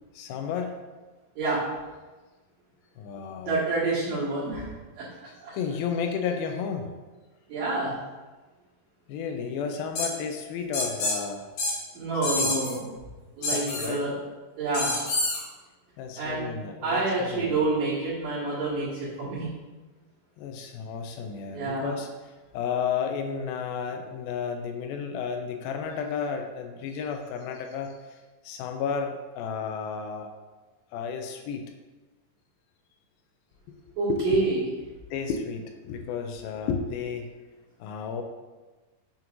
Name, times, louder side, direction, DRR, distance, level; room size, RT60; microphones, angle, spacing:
voice 1, 0.1-0.8 3.0-3.7 5.3-6.9 9.1-11.5 12.2-12.6 13.4-14.1 16.0-17.6 20.4-28.2 28.4-30.3 30.9-31.7 34.1-34.4 35.1-37.3 37.8-38.2, left 6 dB, 80° left, 5 dB, 2.2 m, -32 dB
voice 2, 3.4-4.7 5.0-5.1 5.4-5.5 7.5-8.0 11.9-12.9 13.4-14.2 14.6-15.0 16.2-16.5 16.8-19.5 21.5-21.9 34.0-34.6, right 3 dB, 65° right, -11 dB, 3.2 m, -28 dB
sound 1, 10.0-10.1 10.7-11.2 11.6-11.7 12.2-12.7 13.4-13.9 14.7-15.4, left 2 dB, 65° left, 3.0 m, -27 dB
7.3 x 5.7 x 2.5 m, 1.2 s
omnidirectional pair, 4.5 m